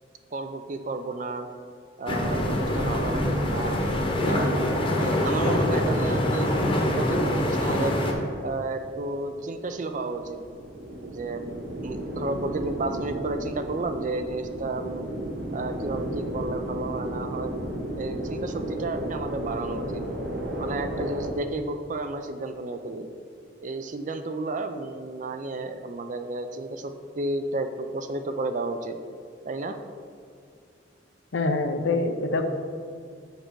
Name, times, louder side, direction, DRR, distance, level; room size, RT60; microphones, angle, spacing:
voice 1, 0.3-1.5 2.0-3.8 4.2-8.0 8.4-10.4 11.0-15.1 15.5-17.5 17.9-20.0 20.6-23.1 23.6-29.0 29.4-29.7, right 2 dB, 45° right, 8 dB, 0.5 m, -32 dB
sound 1, 2.1-8.1, left 1 dB, 30° left, 0.9 m, -24 dB
sound 2, 8.7-21.3, right 1 dB, 60° right, 0.9 m, -34 dB
voice 2, 31.3-32.5, left 3 dB, 85° left, 6 dB, 0.6 m, -25 dB
6.6 x 5.1 x 4.6 m, 2.2 s
head